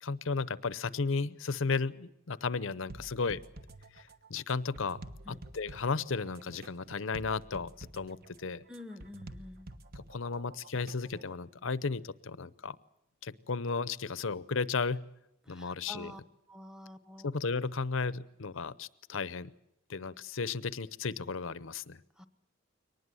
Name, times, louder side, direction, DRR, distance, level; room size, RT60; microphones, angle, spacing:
voice 1, 0.0-3.4 4.0-5.0 5.3-8.6 9.9-12.8 13.2-15.0 15.5-16.1 17.2-19.5 19.9-22.0, left 4 dB, 65° left, 17 dB, 0.7 m, -34 dB
sound 1, 2.9-11.3, right 2 dB, 50° right, 1.2 m, -50 dB
voice 2, 8.7-9.7 15.4-16.2 16.5-17.3 22.2-22.3, left 1 dB, 5° right, 11 dB, 1.1 m, -48 dB
23.0 x 19.5 x 7.7 m, 0.84 s
head